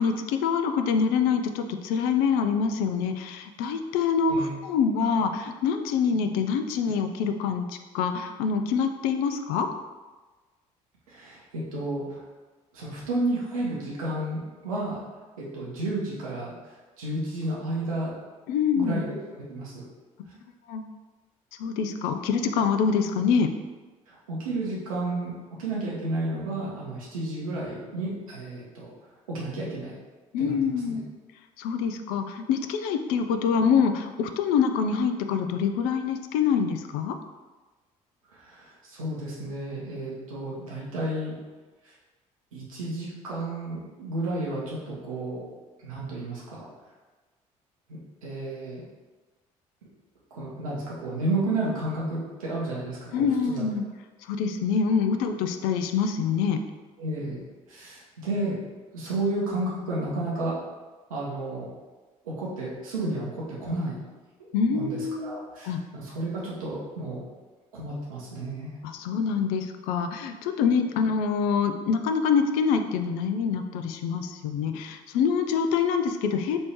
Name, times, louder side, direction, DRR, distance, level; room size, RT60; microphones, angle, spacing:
voice 1, 0.0-9.7 18.5-19.0 20.7-20.8 21.6-23.5 30.3-31.1 31.6-37.2 53.1-53.8 54.3-56.6 64.5-65.4 65.6-65.8 68.8-76.6, left 6 dB, 55° left, 7 dB, 0.4 m, -25 dB
voice 2, 11.1-12.2 12.7-15.0 15.4-16.5 17.0-18.1 18.7-19.8 24.1-25.3 25.6-28.9 29.3-30.0 30.4-31.0 38.3-41.3 41.8-41.9 42.5-45.5 45.8-46.7 47.9-48.8 50.3-53.6 57.0-57.4 57.7-58.6 58.9-60.6 61.1-61.7 62.2-64.0 64.4-67.2 67.7-68.7, right 2 dB, 75° right, -6 dB, 0.8 m, -32 dB
3.2 x 2.7 x 4.5 m, 1.3 s
figure-of-eight pair, 50°, 18 cm